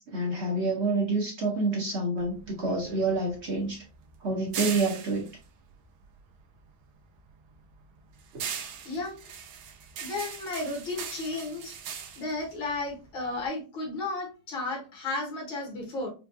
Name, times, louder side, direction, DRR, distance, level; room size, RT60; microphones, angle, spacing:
voice 1, 0.1-3.8 4.2-5.3 8.3-8.4, right 2 dB, 55° right, -1 dB, 0.7 m, -28 dB
sound 1, 2.2-6.7 7.0-13.5, right 7 dB, 80° right, 1.5 m, -40 dB
voice 2, 8.8-9.2 10.0-11.7 12.2-16.1, left 2 dB, 80° left, -2 dB, 2.2 m, -33 dB
4.9 x 2.3 x 2.5 m, 0.33 s
omnidirectional pair, 2.2 m